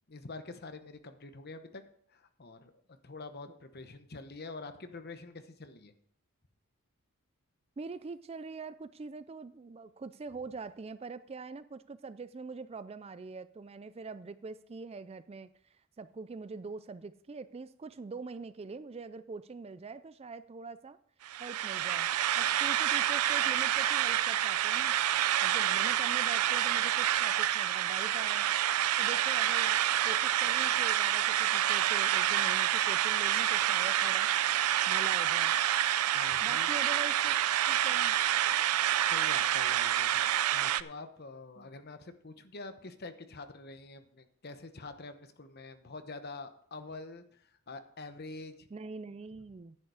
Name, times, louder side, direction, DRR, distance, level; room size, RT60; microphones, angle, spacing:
voice 1, 0.1-1.8 2.1-2.7 3.0-5.9 36.1-36.7 39.0-48.7, left 3 dB, 45° left, 9 dB, 1.0 m, -46 dB
voice 2, 7.8-21.0 21.4-22.1 22.4-24.9 25.4-28.5 29.0-29.8 30.0-34.3 34.9-35.6 36.4-37.4 37.7-38.2 41.6-41.7 48.7-49.8, right 4 dB, 25° right, 14 dB, 0.3 m, -44 dB
sound 1, 21.2-40.8, right 11 dB, 85° right, 0.4 m, -28 dB
10.5 x 9.6 x 4.8 m, 0.63 s
head